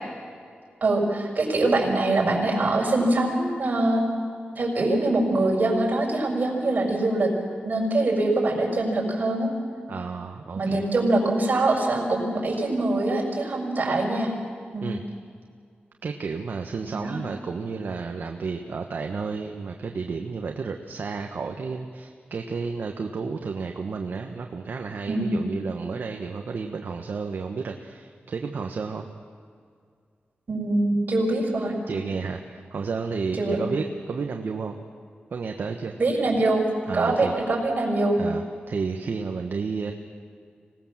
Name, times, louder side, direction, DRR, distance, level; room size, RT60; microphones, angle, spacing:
voice 1, 0.8-4.0 4.6-7.3 7.6-9.5 10.5-14.3 14.7-14.9 16.9-17.2 25.1-25.4 30.5-31.7 33.4-33.6 36.0-38.2, right 2 dB, 50° right, -1 dB, 6.4 m, -23 dB
voice 2, 9.9-10.8 14.8-15.0 16.0-29.0 31.9-34.8 35.3-35.9 36.9-37.3 38.2-39.9, right 5 dB, 65° right, 3 dB, 1.3 m, -31 dB
25.5 x 19.5 x 7.4 m, 2.2 s
wide cardioid pair, 125°, 4 cm